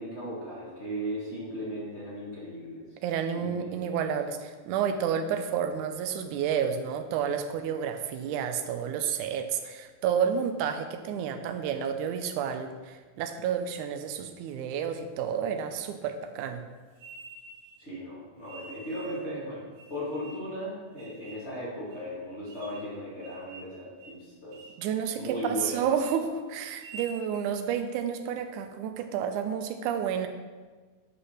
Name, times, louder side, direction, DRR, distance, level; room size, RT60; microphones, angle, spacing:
voice 1, 0.0-2.8 3.3-4.0 17.8-19.6 19.9-24.6 25.2-25.9, equal, 20° left, -7 dB, 2.3 m, -37 dB
voice 2, 3.0-16.6 24.8-30.3, right 8 dB, 80° right, 7 dB, 2.1 m, -30 dB
sound 1, 17.0-17.8 18.5-19.3 19.8-20.5 21.0-21.5 21.9-22.0 22.5-22.9 23.2-23.7 24.0-24.2 24.5-24.8 25.2-25.7 25.9-26.2 26.7-27.3, right 4 dB, 60° right, 1.4 m, -48 dB
8.4 x 5.1 x 6.3 m, 1.4 s
omnidirectional pair, 3.7 m